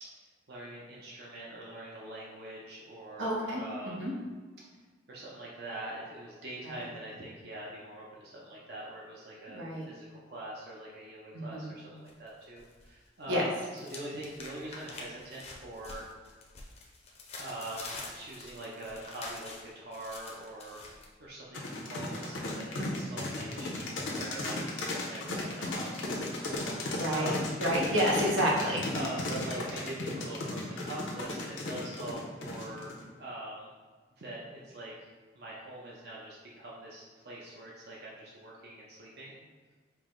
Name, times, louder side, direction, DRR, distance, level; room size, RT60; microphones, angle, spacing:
voice 1, 0.0-4.2 5.1-16.1 17.4-20.8 21.2-27.5 28.9-32.9 33.2-33.7 34.2-39.4, right 1 dB, 55° right, -5 dB, 0.6 m, -43 dB
voice 2, 3.2-3.6 4.0-4.1 6.6-6.9 9.5-9.9 11.3-11.7 13.3-13.4 26.9-28.8, equal, 85° right, -3 dB, 0.9 m, -29 dB
sound 1, 12.1-12.9 13.2-21.1, left 3 dB, 35° left, 0.5 m, -46 dB
sound 2, 21.5-33.0, left 2 dB, 90° left, 0.7 m, -35 dB
4.7 x 2.0 x 3.7 m, 1.4 s
head